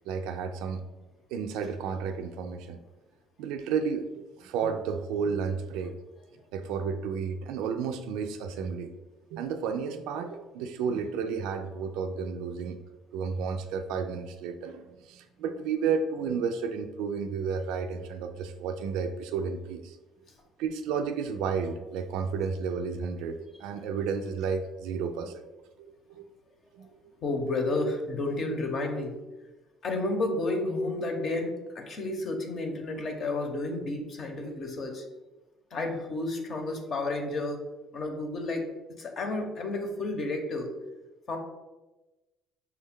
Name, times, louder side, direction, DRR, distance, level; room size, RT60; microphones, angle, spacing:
voice 1, 0.1-0.8 1.3-2.8 3.4-5.9 6.5-8.9 9.3-12.8 13.1-20.0 20.6-25.4 26.1-26.2 26.7-26.9, right 6 dB, 80° right, 7 dB, 0.3 m, -32 dB
voice 2, 27.2-29.1 29.8-35.0 35.7-37.6 37.9-38.7 39.0-40.7 41.3-41.4, left 2 dB, 50° left, 3 dB, 0.8 m, -31 dB
5.8 x 2.2 x 3.6 m, 1.1 s
supercardioid pair, 95°, 0 cm